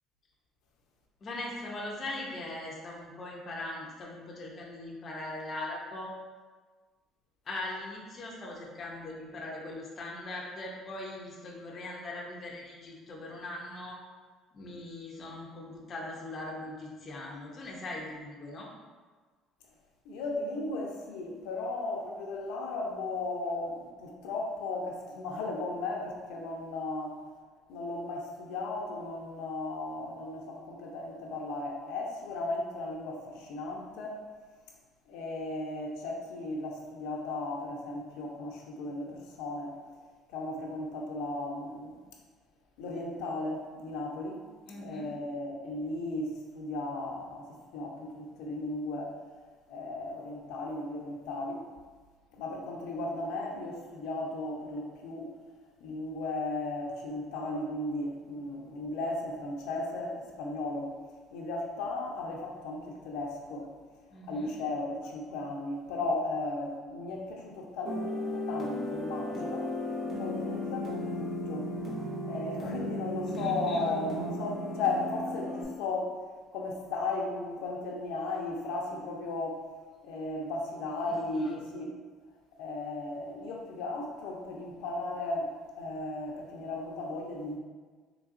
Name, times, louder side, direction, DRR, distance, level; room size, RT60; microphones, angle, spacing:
voice 1, 1.2-6.1 7.5-14.0 14.5-18.7 44.7-45.1 64.1-64.5 73.3-73.9 81.3-81.5, left 2 dB, 25° left, -2 dB, 0.5 m, -40 dB
voice 2, 20.0-27.2 27.7-34.2 35.1-39.8 40.3-42.0 42.8-44.4 44.7-49.2 49.7-51.6 52.3-55.3 55.8-60.9 61.3-63.7 64.3-69.7 70.2-71.7 72.2-76.2 76.5-79.6 80.0-81.9 82.6-87.6, left 2 dB, 90° left, -1 dB, 0.6 m, -35 dB
sound 1, 67.8-75.6, left 1 dB, 20° right, 0.9 m, -35 dB
3.8 x 3.2 x 2.5 m, 1.4 s
cardioid pair, 175°, 0 cm